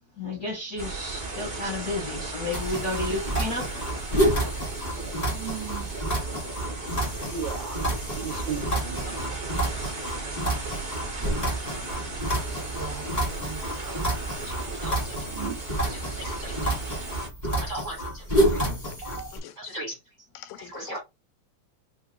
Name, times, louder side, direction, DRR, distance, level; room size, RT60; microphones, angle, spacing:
voice 1, 0.2-3.7, left 2 dB, 65° left, 0.9 m, -32 dB
sound 1, 0.8-17.3, right 3 dB, 50° right, 0.6 m, -35 dB
sound 2, 2.5-19.4, right 1 dB, 35° left, 0.5 m, -29 dB
voice 2, 5.3-5.9 7.3-7.9 8.1-9.4 12.6-13.0 13.4-14.0 14.4-15.6 15.9-16.9 17.6-18.2 18.5-18.6 19.0-20.0 20.6-21.0, right 4 dB, 75° right, 1.1 m, -38 dB
voice 3, 18.5-19.0 19.3-19.5 20.3-21.0, left 13 dB, 85° left, 2.2 m, -43 dB
5.5 x 2.2 x 2.4 m
omnidirectional pair, 3.8 m